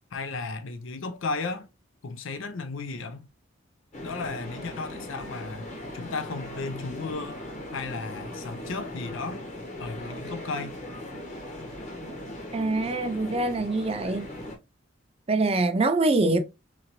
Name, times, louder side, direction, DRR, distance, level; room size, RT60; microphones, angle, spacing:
voice 1, 0.1-1.7 2.0-3.3 4.0-5.7 5.9-7.4 7.7-9.4 9.8-10.8, left 3 dB, 85° left, 0.5 m, -34 dB
sound 1, 3.9-14.6, left 1 dB, 35° left, 1.2 m, -39 dB
voice 2, 12.5-14.3 15.3-16.4, right 2 dB, 30° right, 0.5 m, -24 dB
3.8 x 3.0 x 2.9 m
head